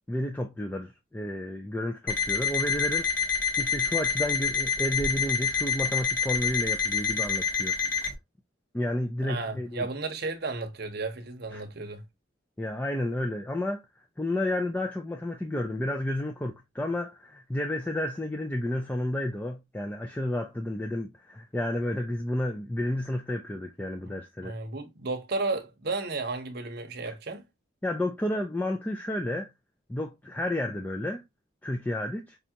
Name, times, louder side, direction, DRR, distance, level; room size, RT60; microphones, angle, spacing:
voice 1, 0.1-3.1 3.6-7.7 8.7-9.9 11.5-11.6 12.6-13.8 14.2-24.6 27.0-27.1 27.8-29.5 29.9-31.2 31.6-32.4, left 1 dB, 10° left, 0.3 m, -31 dB
Alarm, 2.1-8.1, left 6 dB, 45° left, 1.0 m, -27 dB
voice 2, 9.2-12.0 24.4-27.4, right 3 dB, 55° right, 0.8 m, -33 dB
5.1 x 2.4 x 2.8 m
head